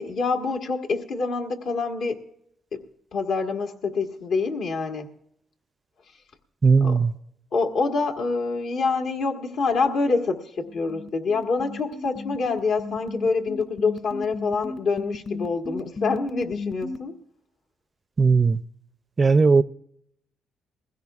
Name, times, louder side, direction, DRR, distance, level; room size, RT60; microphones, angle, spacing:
voice 1, 0.0-2.2 2.7-2.8 3.1-5.1 6.8-7.0 7.5-17.1, left 4 dB, 70° left, 1.5 m, -26 dB
voice 2, 6.6-7.1 18.2-18.6 19.2-19.6, right 4 dB, 30° right, 0.4 m, -17 dB
sound 1, 10.6-17.0, left 3 dB, 45° left, 2.1 m, -34 dB
21.0 x 16.0 x 2.4 m
cardioid pair, 90°, 0 cm